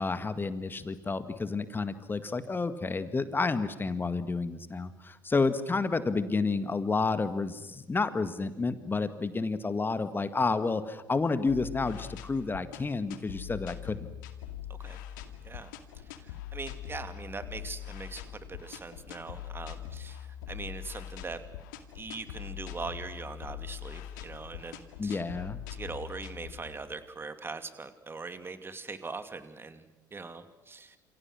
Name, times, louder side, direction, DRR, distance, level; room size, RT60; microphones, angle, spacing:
voice 1, 0.0-14.1 25.0-25.6, left 4 dB, 20° left, 11 dB, 2.0 m, -30 dB
sound 1, 11.5-27.0, left 11 dB, 65° left, 2.2 m, -43 dB
voice 2, 16.0-21.4 21.9-25.2 25.7-31.0, right 4 dB, 20° right, 9 dB, 2.6 m, -41 dB
29.5 x 28.0 x 6.4 m, 1.1 s
figure-of-eight pair, 60°, 11 cm